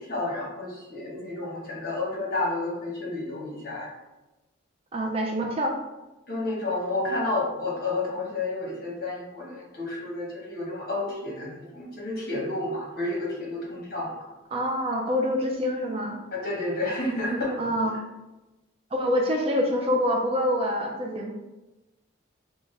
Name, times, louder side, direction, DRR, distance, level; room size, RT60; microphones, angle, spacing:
voice 1, 0.0-3.9 6.3-14.2 16.3-17.6, left 2 dB, 45° left, -4 dB, 1.2 m, -30 dB
voice 2, 4.9-5.7 14.5-16.2 17.6-18.0 18.9-21.3, equal, 30° right, 1 dB, 0.3 m, -26 dB
4.7 x 2.1 x 3.2 m, 1.1 s
head